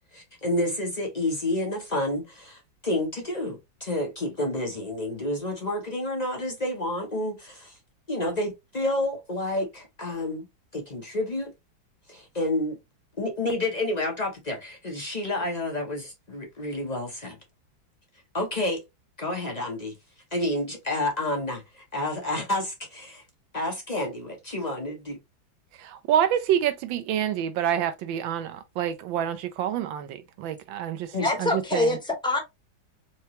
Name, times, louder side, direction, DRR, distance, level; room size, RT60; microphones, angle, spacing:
voice 1, 0.1-7.7 8.1-10.5 10.7-11.5 12.1-12.8 13.2-17.4 18.3-18.8 19.2-19.9 20.3-23.2 23.5-25.2 31.1-31.3, left 1 dB, 50° left, 0.4 m, -29 dB
voice 2, 25.8-32.0, right 10 dB, 80° right, 1.4 m, -27 dB
voice 3, 31.2-32.4, left 2 dB, 5° left, 0.6 m, -25 dB
4.5 x 2.8 x 2.9 m
omnidirectional pair, 2.1 m